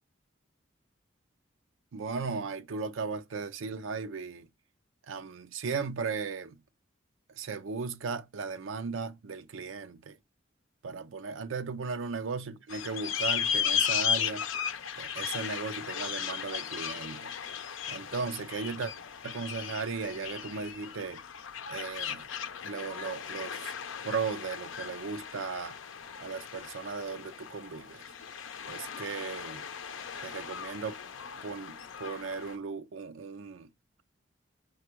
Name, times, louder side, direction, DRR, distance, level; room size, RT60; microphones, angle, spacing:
voice 1, 1.9-4.5 5.1-6.6 7.4-10.2 10.8-14.4 15.0-17.3 17.9-18.9 19.2-21.2 21.7-22.2 22.6-23.7 24.0-25.8 26.2-28.0 28.7-29.6 30.2-30.9 31.4-33.7, right 5 dB, 85° right, 0.5 m, -36 dB
sound 1, 12.7-32.6, left 8 dB, 80° left, 0.6 m, -36 dB
5.1 x 2.3 x 4.4 m
head